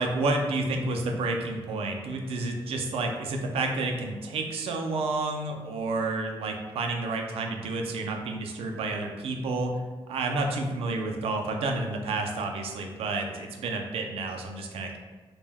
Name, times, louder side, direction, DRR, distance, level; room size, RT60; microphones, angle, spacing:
voice 1, 0.0-9.8 10.1-15.0, right 3 dB, 90° right, 2 dB, 0.4 m, -30 dB
3.3 x 2.2 x 2.2 m, 1.4 s
wide cardioid pair, 155°, 10 cm